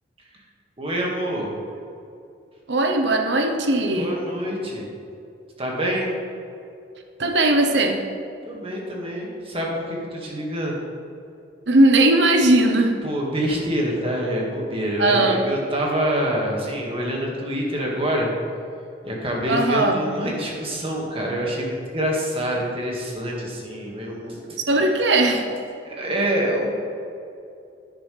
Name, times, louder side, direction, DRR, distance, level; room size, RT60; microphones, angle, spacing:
voice 1, 0.8-1.5 3.9-4.9 5.6-6.1 8.5-10.8 13.0-18.3 19.0-24.9 25.8-26.7, equal, 35° right, -2 dB, 2.0 m, -26 dB
voice 2, 2.7-4.1 7.2-8.0 11.7-12.9 15.0-15.5 19.5-20.0 24.7-25.4, right 2 dB, 75° right, 4 dB, 1.0 m, -18 dB
11.0 x 9.6 x 3.4 m, 2.6 s
head